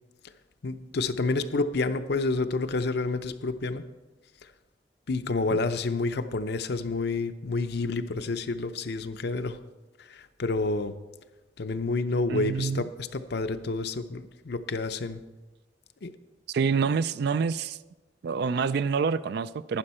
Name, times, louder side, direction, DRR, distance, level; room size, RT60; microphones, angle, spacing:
voice 1, 0.6-3.8 5.1-9.6 10.1-10.9 11.6-15.2 16.0-16.1, left 3 dB, 65° left, 10 dB, 0.6 m, -29 dB
voice 2, 12.3-12.9 16.5-17.8 18.2-19.8, right 5 dB, 65° right, 16 dB, 0.4 m, -27 dB
11.5 x 9.9 x 4.3 m, 1.2 s
head